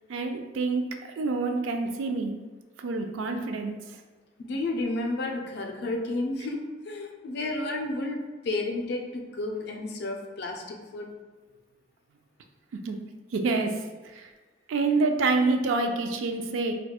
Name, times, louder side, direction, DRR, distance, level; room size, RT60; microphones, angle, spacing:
voice 1, 0.1-0.9 1.2-2.4 2.8-3.8 12.7-13.0 13.3-13.8 14.1-14.3 14.7-16.7, right 3 dB, 80° right, 5 dB, 0.3 m, -27 dB
voice 2, 4.4-11.1, left 2 dB, 55° left, 2 dB, 0.4 m, -32 dB
4.2 x 2.2 x 2.3 m, 1.3 s
head